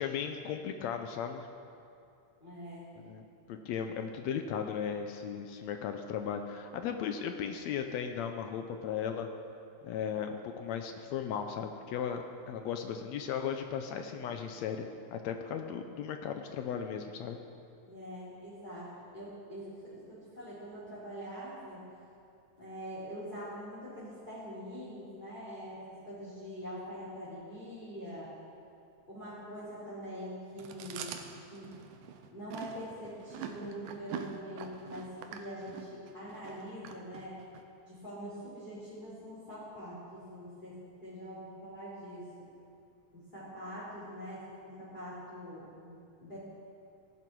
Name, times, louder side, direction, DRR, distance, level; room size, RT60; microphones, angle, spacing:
voice 1, 0.0-1.5 3.1-3.2 3.5-9.3 9.8-17.4, left 7 dB, 75° left, 6 dB, 1.7 m, -36 dB
voice 2, 2.4-2.9 17.9-21.9 22.6-28.3 29.1-31.2 31.5-31.8 32.3-37.4 37.9-42.5 43.1-46.4, equal, 15° left, -10 dB, 3.5 m, -44 dB
Chewing mastication, 30.6-37.6, right 7 dB, 85° right, 2.3 m, -45 dB
16.5 x 11.5 x 4.6 m, 2.5 s
omnidirectional pair, 3.6 m